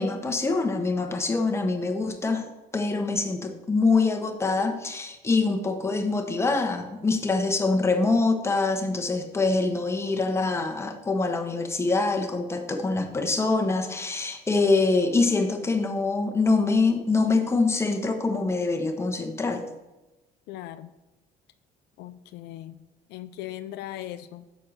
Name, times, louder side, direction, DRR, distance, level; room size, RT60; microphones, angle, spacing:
voice 1, 0.0-2.4 2.7-19.6, left 3 dB, 15° left, 3 dB, 1.0 m, -24 dB
voice 2, 20.5-20.9 22.0-22.8 23.1-24.4, left 13 dB, 85° left, 12 dB, 0.4 m, -38 dB
6.2 x 4.4 x 6.4 m, 1.1 s
cardioid pair, 110°, 17 cm